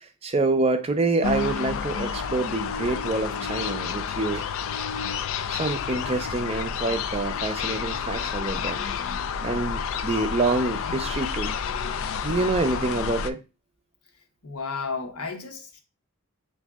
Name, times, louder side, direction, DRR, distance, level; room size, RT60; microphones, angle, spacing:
voice 1, 0.0-4.4 5.5-8.8 9.4-11.6 12.2-13.4, right 3 dB, 25° right, 0.5 m, -27 dB
sound 1, 1.2-13.3, left 6 dB, 60° left, 0.3 m, -30 dB
voice 2, 14.4-15.8, left 4 dB, 75° left, 0.9 m, -33 dB
7.1 x 2.6 x 2.3 m
head